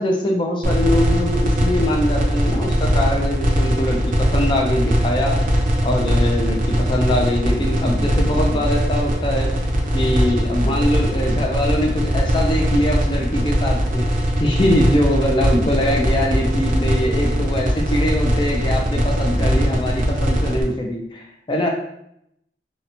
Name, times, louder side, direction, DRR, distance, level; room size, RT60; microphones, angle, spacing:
voice 1, 0.0-5.4 5.8-9.5 9.9-14.1 14.4-21.7, left 1 dB, 25° left, 1 dB, 0.3 m, -22 dB
sound 1, 0.6-20.6, equal, 45° right, 0.5 m, -20 dB
2.8 x 2.1 x 2.6 m, 0.77 s
head